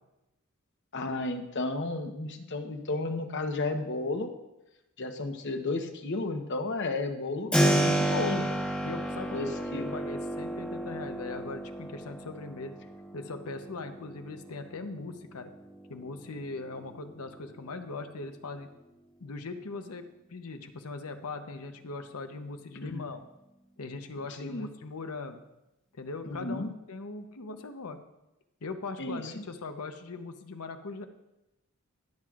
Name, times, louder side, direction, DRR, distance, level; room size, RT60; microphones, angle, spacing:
voice 1, 0.9-4.3 5.0-8.5 9.3-9.9 22.9-23.0 24.4-24.7 26.4-26.7 29.0-29.4, left 2 dB, 55° left, 6 dB, 0.9 m, -33 dB
Keyboard (musical), 7.5-18.2, right 1 dB, 5° left, 1.0 m, -32 dB
voice 2, 8.8-12.7 13.1-15.5 15.9-18.7 19.2-23.2 23.8-25.4 25.9-28.0 28.6-31.0, left 3 dB, 85° left, 7 dB, 0.8 m, -40 dB
18.0 x 7.5 x 2.5 m, 0.95 s
head